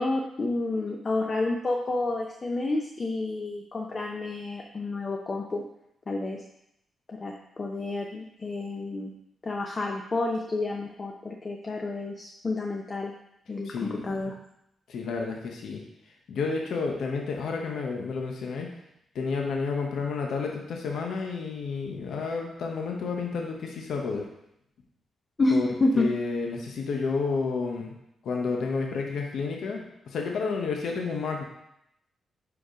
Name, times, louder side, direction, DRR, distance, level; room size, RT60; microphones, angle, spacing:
voice 1, 0.0-5.6 6.1-6.4 7.1-9.1 9.4-13.1 13.5-14.4 25.4-26.1, left 2 dB, 35° left, 1 dB, 0.6 m, -29 dB
voice 2, 13.6-14.0 14.9-15.8 16.3-18.7 19.1-24.3 25.5-25.7 25.9-27.9 28.2-31.4, left 4 dB, 80° left, 1 dB, 0.9 m, -30 dB
4.9 x 4.8 x 5.0 m, 0.80 s
cardioid pair, 120°, 0 cm